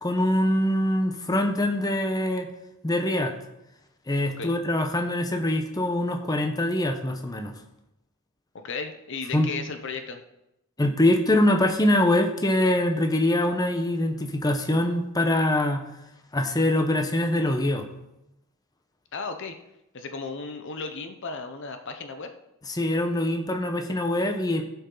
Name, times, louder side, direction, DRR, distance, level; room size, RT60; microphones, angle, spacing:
voice 1, 0.0-2.5 2.8-3.3 4.1-7.5 9.3-9.5 10.8-15.8 16.3-17.9 22.7-24.6, left 1 dB, 15° left, 5 dB, 0.8 m, -24 dB
voice 2, 8.6-10.2 19.1-19.5 19.9-22.3, left 4 dB, 55° left, 7 dB, 0.8 m, -35 dB
16.0 x 5.5 x 3.9 m, 0.88 s
head